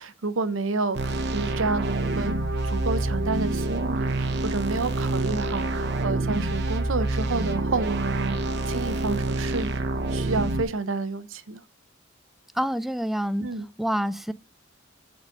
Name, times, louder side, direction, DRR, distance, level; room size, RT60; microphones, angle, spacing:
voice 1, 0.0-2.4 2.6-9.7 10.1-11.6 13.4-13.7, right 3 dB, 80° right, 0.8 m, -29 dB
sound 1, 0.9-10.6, right 2 dB, 60° right, 1.0 m, -27 dB
voice 2, 12.6-13.5 13.8-14.3, equal, ahead, 0.3 m, -27 dB
8.1 x 4.2 x 6.3 m
head